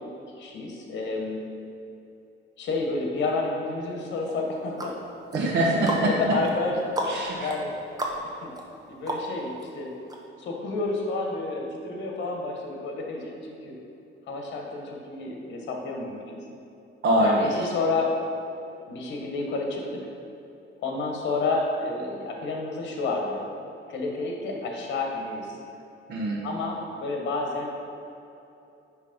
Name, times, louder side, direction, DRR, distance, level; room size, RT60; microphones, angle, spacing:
voice 1, 0.4-1.4 2.6-4.9 5.9-7.1 7.4-7.7 8.4-8.5 8.9-9.9 10.4-13.7 14.3-16.2 17.2-18.1 18.9-20.1 20.8-23.4 23.9-25.5 26.4-27.9, left 3 dB, 60° left, 1 dB, 1.3 m, -30 dB
sound 1, 4.3-9.6 10.1-10.2, right 1 dB, 20° right, 0.8 m, -34 dB
voice 2, 5.3-6.4 7.0-7.5 17.0-17.7 26.1-26.7, right 1 dB, 55° right, -2 dB, 1.1 m, -24 dB
9.4 x 3.2 x 5.2 m, 2.8 s
cardioid pair, 150°, 21 cm